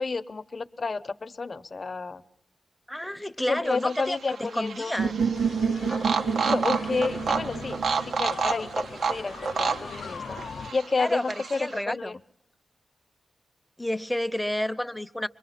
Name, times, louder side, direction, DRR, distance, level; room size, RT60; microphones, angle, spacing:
voice 1, 0.0-2.2 3.5-4.9 6.3-7.8 8.1-10.4 10.7-12.2, left 4 dB, 40° left, 0.8 m, -30 dB
voice 2, 2.9-4.2 4.5-5.3 11.0-12.2 13.8-15.3, left 1 dB, 5° left, 0.7 m, -30 dB
sound 1, 3.7-11.8, right 5 dB, 85° right, 1.1 m, -31 dB
sound 2, 5.0-8.9, right 6 dB, 70° right, 3.0 m, -29 dB
sound 3, 5.3-10.7, left 6 dB, 75° left, 0.7 m, -41 dB
25.0 x 22.0 x 5.8 m
wide cardioid pair, 135°, 0 cm